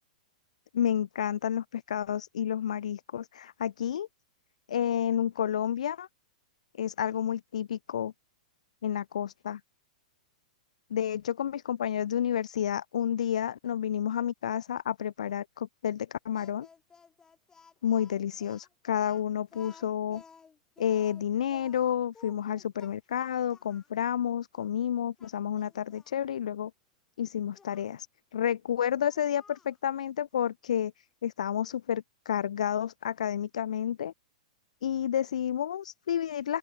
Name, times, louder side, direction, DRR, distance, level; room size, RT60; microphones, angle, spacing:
voice 1, 0.7-4.1 4.7-6.1 6.8-8.1 8.8-9.6 10.9-16.7 17.8-20.2 20.8-26.7 27.2-28.1 28.3-30.9 31.2-34.1 34.8-36.6, left 9 dB, 70° left, 1.0 m, -30 dB
Speech, 16.3-23.9 24.5-24.7 25.2-26.1 27.5-27.9 29.0-29.8, left 5 dB, 15° left, 4.3 m, -55 dB
open air
hypercardioid pair, 110°, 4 cm